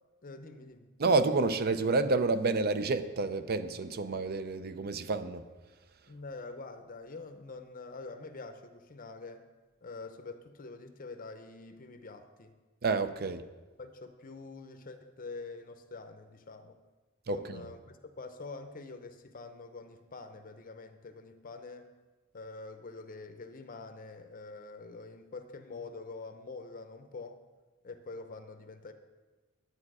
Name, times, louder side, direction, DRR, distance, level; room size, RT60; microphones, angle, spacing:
voice 1, 0.2-0.9 6.1-9.4 9.8-12.5 13.8-16.8 17.3-21.9 22.3-27.4 27.8-28.9, left 3 dB, 45° left, 0.7 m, -45 dB
voice 2, 1.0-5.4 12.8-13.4 17.3-17.6, right 3 dB, 50° right, 0.6 m, -29 dB
11.0 x 8.6 x 4.8 m
head